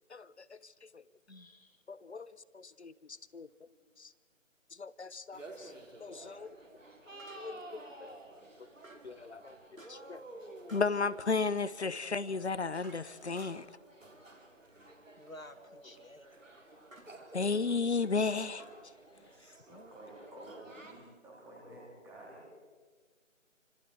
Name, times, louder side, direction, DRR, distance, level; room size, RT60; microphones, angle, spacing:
voice 1, 0.1-0.4 0.9-1.0 1.9-3.5 4.0-4.1 4.8-5.7 6.0-6.5 7.4-8.2 9.0-9.6 9.9-10.2 10.7-13.6 17.3-18.6, left 4 dB, 55° left, 18 dB, 1.0 m, -34 dB
voice 2, 1.3-1.8 15.2-16.3 17.3-17.4 19.7-19.9, left 1 dB, 90° left, 11 dB, 2.0 m, -52 dB
sound 1, 3.5-3.6 7.2-7.7 8.8-9.2 9.8-10.2 10.7-11.0 12.2-13.8 15.3-15.6 16.9-17.2 18.6-19.6, right 1 dB, 90° right, 4.4 m, -58 dB
sound 2, 5.3-21.0, right 2 dB, 70° right, 4.4 m, -53 dB
voice 3, 19.3-22.5, right 1 dB, 5° right, -4 dB, 3.4 m, -51 dB
29.5 x 26.0 x 4.7 m, 1.5 s
figure-of-eight pair, 155°, 39 cm